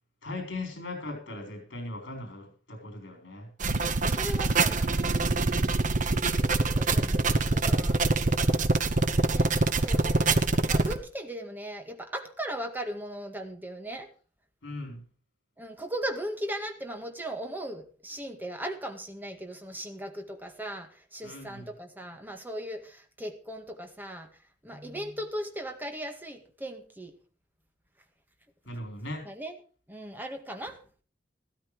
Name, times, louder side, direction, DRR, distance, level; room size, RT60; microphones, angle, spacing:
voice 1, 0.2-3.5 5.8-6.0 7.8-8.0 8.5-8.6 14.6-15.0 21.2-21.7 28.7-29.3, left 2 dB, 65° left, 4.1 m, -39 dB
sound 1, 3.6-11.0, right 3 dB, 45° right, 0.9 m, -25 dB
voice 2, 4.1-6.2 6.7-7.3 7.5-8.2 9.3-14.1 15.6-27.2 29.3-29.6 29.9-30.8, right 1 dB, 10° right, 1.9 m, -38 dB
14.0 x 13.0 x 4.7 m
head